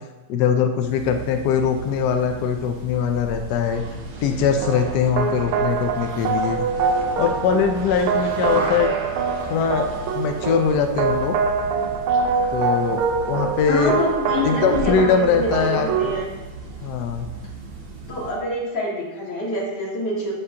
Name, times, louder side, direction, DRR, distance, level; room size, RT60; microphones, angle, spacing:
voice 1, 0.3-3.8 4.2-6.6 7.2-8.9 9.5-11.4 12.5-14.0 14.4-16.1 16.8-17.3, left 6 dB, 75° left, 5 dB, 0.9 m, -22 dB
sound 1, 0.7-18.5, right 2 dB, 50° right, 0.7 m, -35 dB
sound 2, 4.6-16.2, right 5 dB, 80° right, 1.4 m, -25 dB
voice 2, 13.7-16.3 18.1-20.3, left 1 dB, 50° left, -5 dB, 2.6 m, -26 dB
13.5 x 5.0 x 2.8 m, 1.1 s
omnidirectional pair, 2.3 m